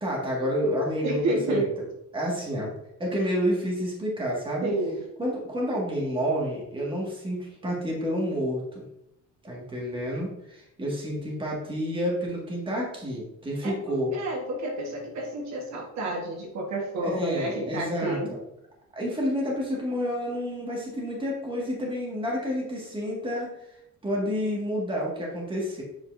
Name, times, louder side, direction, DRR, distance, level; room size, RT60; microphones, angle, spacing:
voice 1, 0.0-1.6 2.1-2.7 3.0-4.7 5.2-8.8 9.4-14.1 17.0-18.4 18.9-23.8 24.0-25.8, equal, 15° right, -3 dB, 1.8 m, -29 dB
voice 2, 1.0-1.7 4.6-5.0 13.6-18.3, right 2 dB, 60° right, 0 dB, 1.4 m, -30 dB
7.8 x 5.5 x 2.6 m, 0.81 s
cardioid pair, 160°, 31 cm